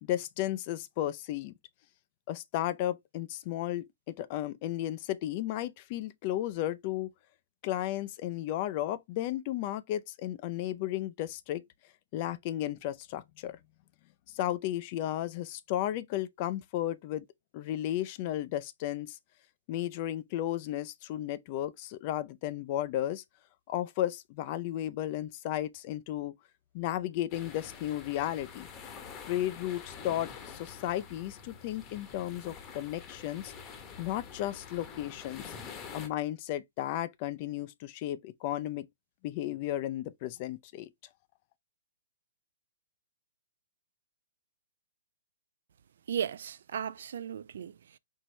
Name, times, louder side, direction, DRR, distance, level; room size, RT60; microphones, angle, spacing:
voice 1, 0.0-1.5 2.3-7.1 7.6-11.6 12.1-13.6 14.3-17.2 17.5-19.2 19.7-23.2 23.7-26.4 26.7-28.7 29.2-33.5 34.0-35.4 35.9-38.9 39.2-40.9, left 13 dB, 40° left, 0.4 m, -34 dB
sound 1, 27.3-36.1, left 6 dB, 25° left, 0.9 m, -47 dB
voice 2, 46.1-48.0, right 8 dB, 65° right, 0.3 m, -36 dB
4.5 x 2.9 x 3.1 m
hypercardioid pair, 135°, 0 cm